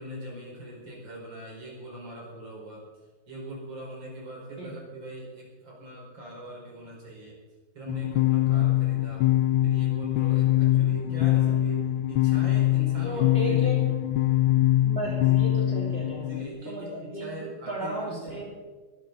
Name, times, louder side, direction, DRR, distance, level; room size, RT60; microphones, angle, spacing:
voice 1, 0.0-2.8 3.3-7.4 7.7-9.2 9.6-13.9 15.7-18.4, right 1 dB, 65° right, -3 dB, 5.5 m, -42 dB
sound 1, 7.9-16.5, left 13 dB, 85° left, 1.5 m, -23 dB
voice 2, 13.0-13.8 14.7-17.3 17.7-18.4, equal, 30° right, -3 dB, 3.2 m, -34 dB
21.0 x 13.0 x 4.0 m, 1.3 s
omnidirectional pair, 2.2 m